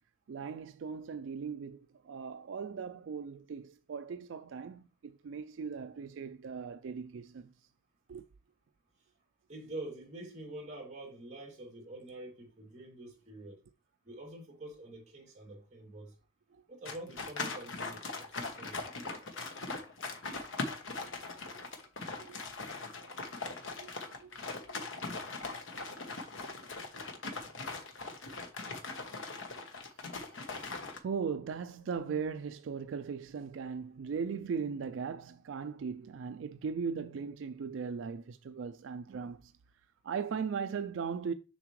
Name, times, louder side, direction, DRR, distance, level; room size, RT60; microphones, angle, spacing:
voice 1, 0.3-7.5 8.1-8.2 16.5-16.6 21.5-21.6 22.2-22.4 23.4-23.9 24.2-24.4 24.6-25.2 25.5-25.6 27.7-27.8 28.3-28.4 29.8-30.0 30.5-30.7 31.0-39.5 40.0-41.3, right 6 dB, 75° right, 0.4 m, -39 dB
voice 2, 9.5-13.6 14.0-16.1 16.7-18.8, right 1 dB, 35° right, 2.5 m, -46 dB
sound 1, 16.8-31.0, left 3 dB, 75° left, 1.1 m, -40 dB
7.1 x 5.8 x 3.1 m
head